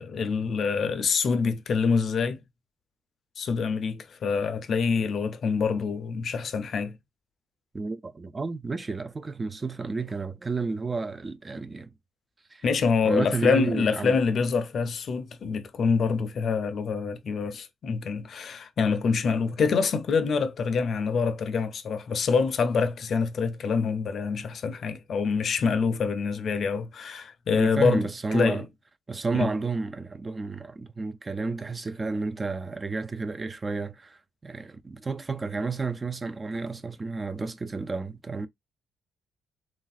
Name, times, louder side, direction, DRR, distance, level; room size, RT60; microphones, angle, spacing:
voice 1, 0.0-2.4 3.4-7.0 12.6-28.7 29.4-29.5, left 5 dB, 55° left, 0.4 m, -26 dB
voice 2, 7.7-11.9 12.5-12.6 13.0-14.2 27.5-28.6 29.1-38.5, right 3 dB, 25° right, 0.3 m, -31 dB
3.1 x 2.4 x 2.3 m
cardioid pair, 90°, 0 cm